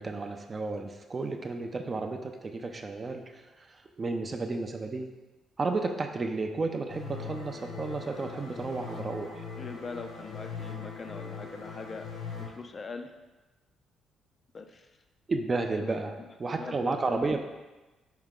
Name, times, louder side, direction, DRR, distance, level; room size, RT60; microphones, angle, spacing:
voice 1, 0.0-5.1 5.6-9.5 15.3-16.1 16.4-17.4, right 3 dB, 35° right, 4 dB, 0.4 m, -32 dB
sound 1, 6.9-12.5, left 5 dB, 80° left, 0.8 m, -41 dB
voice 2, 9.6-12.1 12.4-13.1 14.5-14.9 15.8-16.0 16.6-17.3, left 4 dB, 40° left, 6 dB, 0.3 m, -41 dB
4.7 x 2.2 x 3.7 m, 1.1 s
cardioid pair, 90°, 0 cm